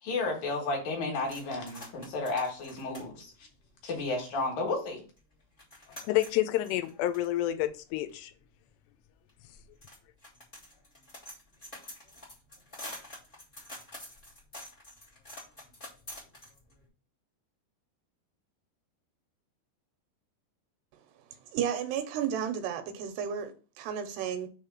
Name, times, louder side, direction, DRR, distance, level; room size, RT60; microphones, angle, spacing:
voice 1, 0.0-3.5 3.8-5.0, left 3 dB, 65° left, 2.8 m, -32 dB
sound 1, 1.2-4.4 4.8-4.9 5.2-16.8, left 1 dB, 35° left, 0.8 m, -48 dB
voice 2, 6.0-8.3, left 14 dB, 90° left, 2.8 m, -29 dB
voice 3, 21.5-24.5, right 8 dB, 80° right, 2.8 m, -33 dB
6.3 x 3.3 x 5.9 m
omnidirectional pair, 4.8 m